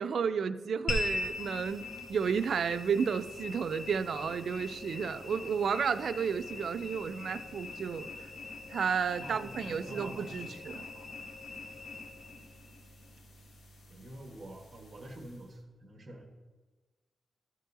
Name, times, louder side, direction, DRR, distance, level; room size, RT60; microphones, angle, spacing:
voice 1, 0.0-8.1 8.7-10.9, right 6 dB, 60° right, 11 dB, 0.3 m, -32 dB
sound 1, 0.9-15.5, left 3 dB, 70° left, 1.0 m, -42 dB
voice 2, 9.2-10.4 10.7-11.1 13.9-16.2, right 1 dB, 30° right, 2 dB, 1.2 m, -47 dB
13.0 x 6.3 x 2.7 m, 1.3 s
wide cardioid pair, 160°, 0 cm